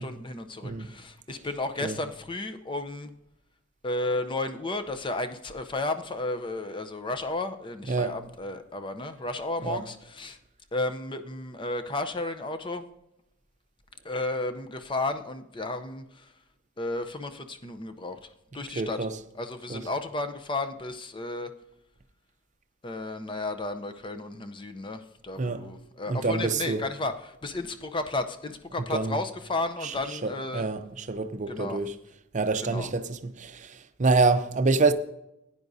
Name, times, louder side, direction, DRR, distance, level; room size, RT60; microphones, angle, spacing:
voice 1, 0.0-3.1 3.8-10.4 10.7-12.9 14.0-16.3 16.8-18.2 18.5-19.0 19.3-21.5 22.8-30.7 31.5-31.8 32.6-32.9, left 2 dB, 25° left, 0.6 m, -33 dB
voice 2, 18.7-19.2 19.7-19.8 25.4-25.7 26.1-26.8 28.8-29.2 29.8-32.0 32.3-34.9, right 3 dB, 35° right, 0.6 m, -27 dB
15.5 x 9.9 x 2.7 m
head